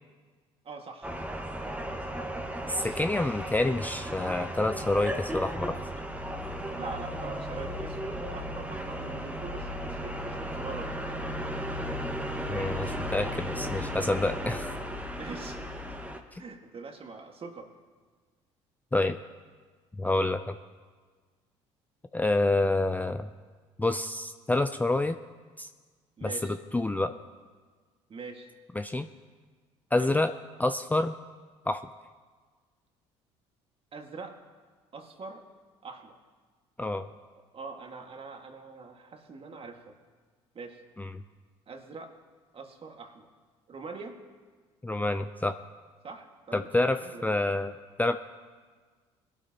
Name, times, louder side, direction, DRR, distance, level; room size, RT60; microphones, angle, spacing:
voice 1, 0.6-1.1 2.4-3.0 6.7-11.0 15.2-15.8 16.4-17.7 22.3-22.5 26.2-26.6 28.1-28.5 30.0-30.2 33.9-34.4 34.9-35.4 35.8-36.2 37.2-40.0 40.5-40.8 41.7-42.1 42.5-43.3 43.7-44.2 46.0-46.7 47.0-47.4, right 4 dB, 40° right, 4 dB, 1.9 m, -43 dB
sound 1, 1.0-16.2, equal, 10° right, 1.5 m, -35 dB
voice 2, 2.7-5.8 12.5-14.8 16.3-16.4 18.9-19.2 20.0-20.5 22.1-23.3 23.8-25.2 25.6-25.7 26.2-27.1 28.8-29.1 29.9-30.3 30.6-31.1 31.7-31.8 36.8-37.0 41.0-41.1 44.8-45.5 46.5-48.2, left 2 dB, 10° left, 9 dB, 0.5 m, -28 dB
21.0 x 12.5 x 2.9 m, 1.5 s
hypercardioid pair, 65°, 15 cm